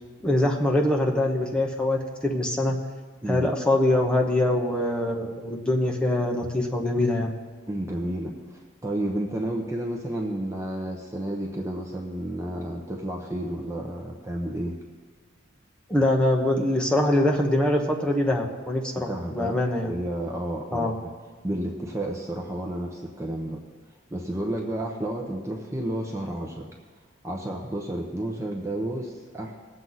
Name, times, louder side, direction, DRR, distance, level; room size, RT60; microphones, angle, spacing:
voice 1, 0.2-2.8 3.3-7.3 15.9-19.9 20.7-21.0, left 1 dB, 5° left, -1 dB, 1.1 m, -23 dB
voice 2, 7.7-14.8 19.1-19.6 19.9-20.9 21.4-23.6 24.1-26.7 27.2-29.5, right 1 dB, 15° right, 0 dB, 0.9 m, -31 dB
19.5 x 7.7 x 4.1 m, 1.5 s
head